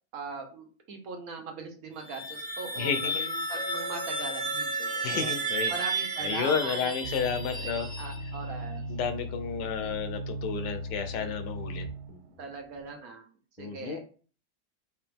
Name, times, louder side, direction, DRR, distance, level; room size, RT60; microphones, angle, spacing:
voice 1, 0.1-5.3 5.7-6.9 7.6-8.8 9.8-9.9 12.4-13.2 13.6-14.0, right 4 dB, 65° right, 4 dB, 1.2 m, -40 dB
sound 1, 1.9-8.6, right 2 dB, 5° left, 0.8 m, -33 dB
voice 2, 2.8-3.2 5.0-5.7 6.2-7.9 8.9-12.2 13.6-14.0, left 6 dB, 85° left, 8 dB, 1.3 m, -32 dB
Chink clink, 3.6-8.0, right 1 dB, 65° left, 0.9 m, -44 dB
sound 2, 7.0-12.2 12.8-12.9, equal, 80° right, 0.6 m, -37 dB
4.9 x 3.0 x 3.4 m, 0.41 s
omnidirectional pair, 1.8 m